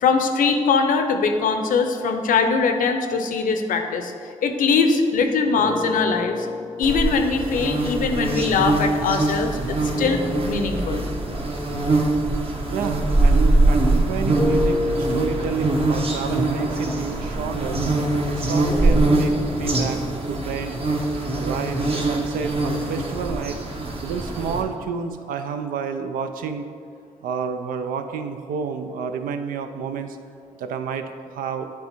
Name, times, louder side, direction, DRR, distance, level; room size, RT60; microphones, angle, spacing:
voice 1, 0.0-6.5 6.8-11.1, left 5 dB, 70° left, 6 dB, 0.6 m, -22 dB
sound 1, 5.6-9.1 9.9-13.7 14.3-22.3, left 2 dB, 5° left, 0.6 m, -33 dB
sound 2, 6.8-24.6, right 2 dB, 40° right, 1.0 m, -23 dB
voice 2, 12.7-17.8 18.3-20.0 20.3-20.8 21.3-23.6 24.0-26.7 27.2-30.2 30.6-31.7, right 6 dB, 80° right, 8 dB, 0.5 m, -30 dB
8.2 x 3.5 x 4.5 m, 2.3 s
supercardioid pair, 55°, 14 cm